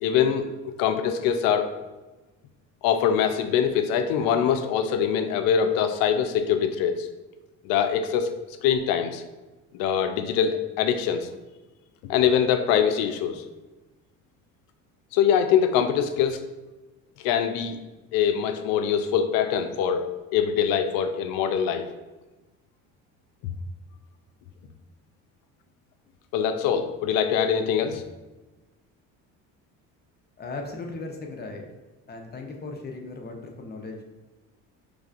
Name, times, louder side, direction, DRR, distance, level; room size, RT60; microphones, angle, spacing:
voice 1, 0.0-1.7 2.8-7.1 7.6-8.3 8.6-9.2 9.7-11.3 12.0-13.4 15.1-16.4 17.2-17.8 18.1-20.1 20.3-21.8 26.3-28.0, left 8 dB, 85° left, 8 dB, 0.5 m, -23 dB
voice 2, 30.4-31.6 32.1-34.0, left 3 dB, 30° left, 2 dB, 0.7 m, -37 dB
5.1 x 3.3 x 2.5 m, 1.2 s
cardioid pair, 105°, 34 cm